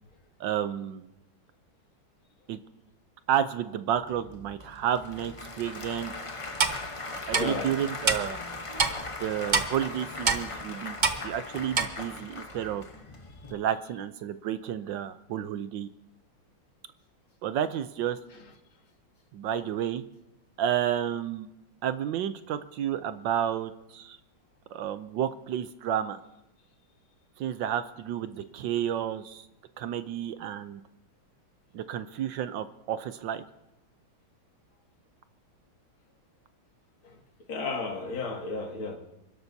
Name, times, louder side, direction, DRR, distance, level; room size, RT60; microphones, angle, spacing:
voice 1, 0.4-1.1 2.5-2.6 3.3-6.1 7.3-8.4 9.2-11.0 11.2-12.8 13.5-15.9 17.4-18.2 19.3-20.0 20.6-21.5 21.8-24.2 24.7-26.2 27.4-29.5 29.8-30.8 31.7-33.4, right 10 dB, 70° right, 12 dB, 1.2 m, -31 dB
Applause / Crowd, 3.9-13.5, left 2 dB, 60° left, 0.3 m, -40 dB
Clock, 6.6-6.8 7.3-7.4 8.1-8.2 8.8-8.9 9.5-9.7 10.3-10.4 11.0-11.2 11.7-11.9, right 5 dB, 50° right, 0.5 m, -23 dB
voice 2, 7.3-7.7 37.0-37.2 37.5-39.0, left 3 dB, 80° left, 2 dB, 2.9 m, -33 dB
29.5 x 12.5 x 2.7 m, 0.95 s
omnidirectional pair, 2.3 m